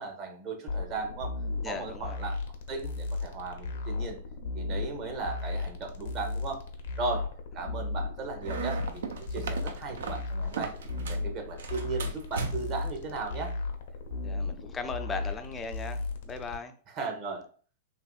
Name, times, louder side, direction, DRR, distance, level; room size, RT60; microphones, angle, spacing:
voice 1, 0.0-1.3 1.6-2.4 2.7-4.2 4.5-6.6 7.0-7.3 7.5-10.7 11.1-13.5 17.0-17.5, right 4 dB, 40° right, 3 dB, 0.8 m, -36 dB
sound 1, 0.7-16.6, left 3 dB, 70° left, 0.6 m, -35 dB
voice 2, 1.6-2.2 14.2-16.8, left 4 dB, 20° left, 7 dB, 0.4 m, -38 dB
sound 2, 8.4-11.3 11.6-12.9, right 4 dB, 75° right, 0.4 m, -37 dB
2.9 x 2.7 x 2.3 m, 0.42 s
hypercardioid pair, 115°, 0 cm